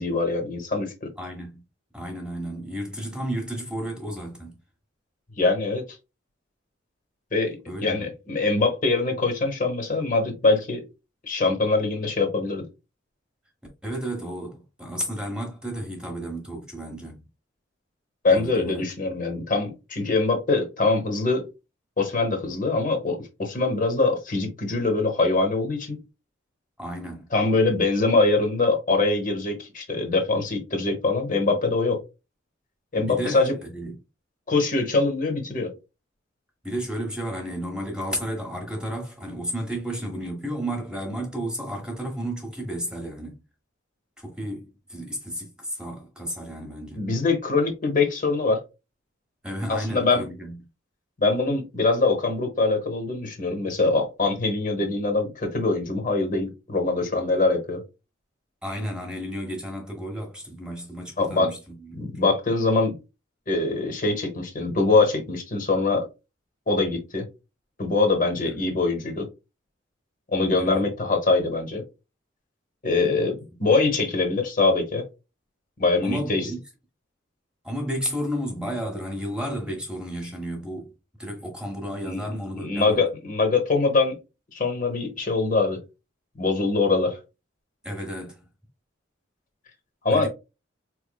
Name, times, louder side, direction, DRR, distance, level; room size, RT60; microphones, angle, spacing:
voice 1, 0.0-1.1 5.4-5.8 7.3-10.8 11.2-12.7 18.2-21.4 22.0-26.0 27.3-32.0 32.9-33.5 34.5-35.7 47.0-48.6 49.7-50.2 51.2-57.8 61.2-61.5 61.9-62.9 63.5-66.1 66.7-67.3 67.8-69.3 70.3-71.8 72.8-75.0 75.8-76.5 82.0-82.2 82.6-84.2 84.5-85.8 86.4-87.2 90.0-90.3, left 3 dB, 45° left, 0.9 m, -23 dB
voice 2, 1.2-1.6 1.9-4.5 7.7-8.1 13.8-17.2 18.3-18.8 26.8-27.2 32.9-34.0 36.6-43.4 44.2-47.0 49.4-50.6 58.6-62.0 68.4-68.6 70.6-70.9 76.0-76.6 77.6-80.9 81.2-83.0 87.8-88.4 90.1-90.3, equal, 5° right, 0.9 m, -32 dB
4.2 x 3.1 x 2.2 m
head